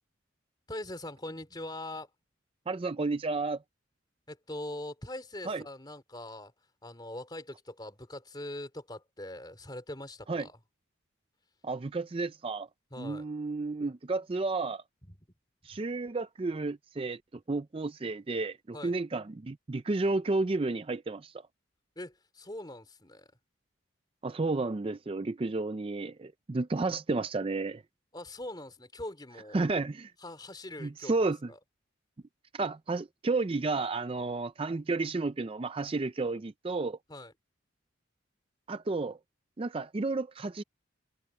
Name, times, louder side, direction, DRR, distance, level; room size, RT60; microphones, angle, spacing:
voice 1, 0.7-2.1 4.3-6.5 6.8-10.6 12.9-13.2 15.0-15.2 15.7-15.8 18.7-19.0 22.0-23.3 28.1-29.6 30.2-31.6 37.1-37.3, left 1 dB, 20° left, 3.6 m, -42 dB
voice 2, 2.7-3.6 5.5-5.6 10.3-10.5 11.6-12.7 13.0-14.8 15.6-17.2 17.5-21.3 24.2-27.8 29.5-30.1 30.8-31.5 32.5-37.0 38.7-39.2 39.6-40.6, right 3 dB, 30° right, 0.4 m, -32 dB
head